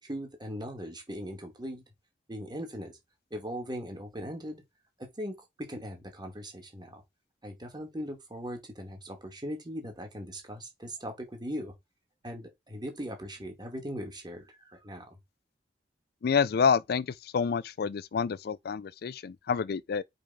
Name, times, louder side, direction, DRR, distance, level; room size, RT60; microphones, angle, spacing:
voice 1, 0.0-1.8 2.3-2.9 3.3-4.6 5.0-7.0 7.4-11.7 12.2-15.2, equal, 25° right, 2.4 m, -39 dB
voice 2, 16.2-20.0, left 6 dB, 60° left, 0.4 m, -28 dB
5.2 x 5.1 x 5.3 m
head